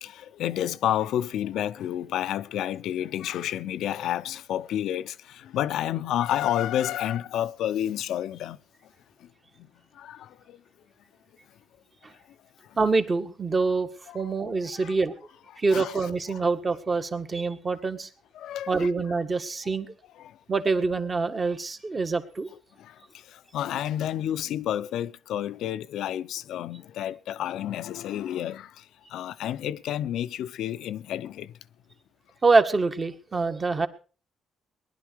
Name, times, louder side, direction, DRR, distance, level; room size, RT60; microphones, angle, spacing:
voice 1, 0.0-8.9 9.2-9.3 9.6-10.6 12.1-12.2 12.6-12.8 14.1-14.2 14.7-15.0 15.7-16.0 18.3-18.9 20.2-20.4 22.8-31.5, left 11 dB, 80° left, 0.7 m, -30 dB
voice 2, 12.8-13.9 14.1-15.1 15.6-18.1 18.7-19.9 20.5-22.5 32.4-33.9, right 3 dB, 30° right, 1.7 m, -25 dB
19.5 x 11.5 x 4.7 m
cardioid pair, 90°, 0 cm